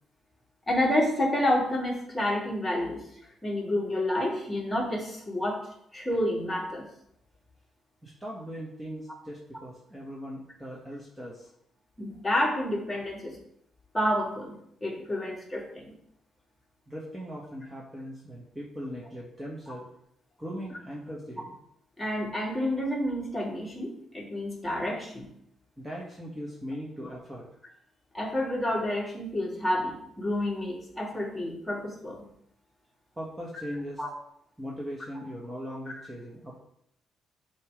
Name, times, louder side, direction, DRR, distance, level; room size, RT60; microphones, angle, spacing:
voice 1, 0.7-3.0 3.4-5.6 5.9-6.9 12.0-13.4 13.9-15.9 22.0-25.3 28.1-32.2 34.0-34.1, left 1 dB, 10° left, -5 dB, 2.7 m, -29 dB
voice 2, 8.0-11.5 16.9-19.9 20.4-21.5 25.8-27.5 33.2-34.0 34.6-36.6, equal, 10° right, -4 dB, 1.3 m, -39 dB
8.2 x 3.2 x 5.0 m, 0.74 s
cardioid pair, 90°, 0 cm